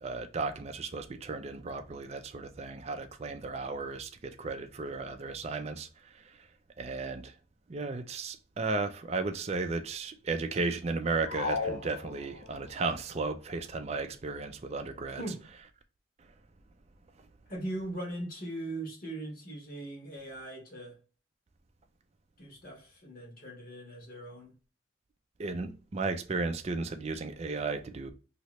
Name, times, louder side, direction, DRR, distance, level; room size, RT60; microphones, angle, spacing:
voice 1, 0.0-6.5 6.8-7.4 7.7-15.2 25.4-28.1, right 3 dB, 30° right, 0.4 m, -35 dB
sound 1, 11.2-12.7, left 4 dB, 80° left, 0.4 m, -35 dB
voice 2, 17.5-21.0 22.4-24.5, right 1 dB, 45° left, 1.3 m, -40 dB
3.1 x 2.8 x 3.0 m
head